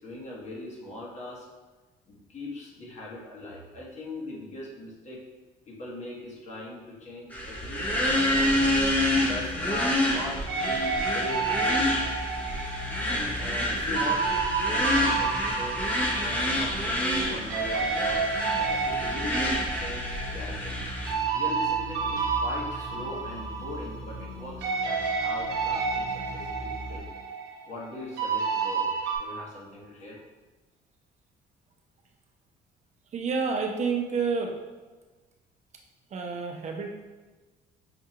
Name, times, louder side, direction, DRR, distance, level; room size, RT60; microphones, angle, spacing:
voice 1, 0.0-1.5 2.1-5.2 5.7-8.7 9.2-11.9 13.0-15.8 16.2-20.8 21.3-27.1 27.7-28.9 29.2-30.2, left 2 dB, 45° left, -4 dB, 1.2 m, -40 dB
sound 1, 7.3-21.1, left 1 dB, 10° left, 0.7 m, -28 dB
sound 2, 7.6-27.0, equal, 90° left, 0.8 m, -41 dB
sound 3, 10.5-17.2 17.5-24.3 24.6-29.2, right 5 dB, 90° right, 0.9 m, -30 dB
voice 2, 33.1-34.5 36.1-36.9, right 5 dB, 45° right, 2 dB, 0.5 m, -29 dB
5.7 x 2.3 x 2.8 m, 1.3 s
cardioid pair, 110°, 17 cm